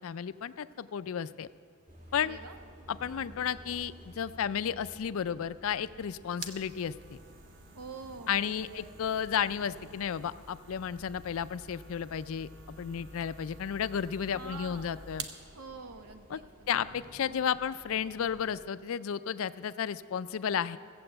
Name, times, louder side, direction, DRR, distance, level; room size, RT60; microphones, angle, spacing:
voice 1, 0.0-1.5 2.1-2.4 2.9-6.9 8.3-15.2 16.3-16.4 16.7-20.8, left 8 dB, 65° left, 15 dB, 0.4 m, -33 dB
sound 1, 1.9-18.6, equal, 35° right, 1.9 m, -55 dB
voice 2, 2.2-2.6 7.7-9.0 14.3-15.0 15.5-16.7, right 3 dB, 75° right, 6 dB, 1.1 m, -46 dB
sound 2, 5.8-15.4, right 3 dB, 55° right, 0.9 m, -49 dB
15.0 x 7.7 x 7.8 m, 2.1 s
head